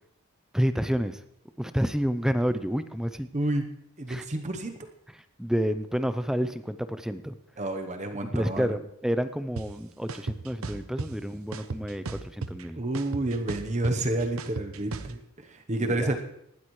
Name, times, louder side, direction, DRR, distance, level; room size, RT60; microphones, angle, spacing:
voice 1, 0.5-1.2 1.6-3.3 4.1-4.3 5.4-7.4 8.3-12.8 15.8-16.1, equal, ahead, 11 dB, 0.5 m, -29 dB
voice 2, 3.3-3.7 4.0-4.8 7.6-8.7 12.7-16.2, right 2 dB, 30° right, 6 dB, 0.9 m, -29 dB
sound 1, 9.6-9.7 10.1-11.1 11.5-12.6 12.9-15.1, right 3 dB, 75° right, 0.8 m, -35 dB
18.5 x 12.5 x 3.1 m, 0.78 s
head